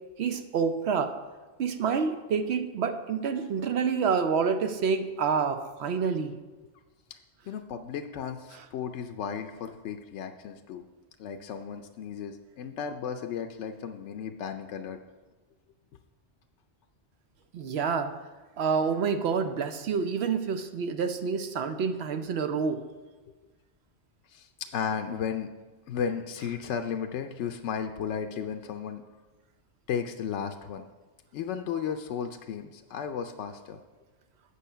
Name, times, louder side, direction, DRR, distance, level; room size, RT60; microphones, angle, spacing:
voice 1, 0.2-1.1 1.6-6.3 17.5-18.1 18.6-22.8, right 6 dB, 70° right, 8 dB, 0.9 m, -28 dB
voice 2, 7.5-10.8 11.2-15.0 24.3-25.5 25.9-29.0 29.9-30.9 31.3-33.8, left 7 dB, 85° left, 6 dB, 0.9 m, -34 dB
8.4 x 6.2 x 5.5 m, 1.3 s
omnidirectional pair, 1.2 m